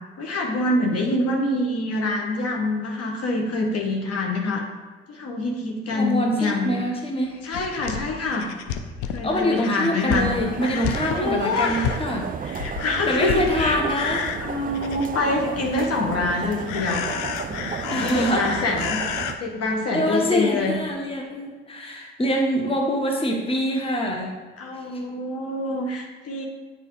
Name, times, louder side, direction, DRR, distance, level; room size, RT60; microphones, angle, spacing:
voice 1, 0.2-4.6 5.1-6.8 7.4-8.5 9.1-10.3 11.0-11.9 12.4-13.8 14.4-17.1 17.5-19.0 19.4-20.8 24.6-26.4, left 2 dB, 55° left, 0 dB, 1.4 m, -26 dB
voice 2, 5.9-7.4 9.2-12.3 13.1-14.4 17.9-18.7 19.9-24.4 24.9-25.0, equal, 20° left, 1 dB, 1.2 m, -25 dB
sound 1, 7.4-15.3 15.6-16.2 16.7-19.3 20.2-20.3 20.6-20.7, left 7 dB, 75° left, 0.6 m, -31 dB
sound 2, 10.1-19.4, right 7 dB, 30° right, 0.4 m, -33 dB
8.9 x 4.3 x 3.1 m, 1.4 s
hypercardioid pair, 45°, 30 cm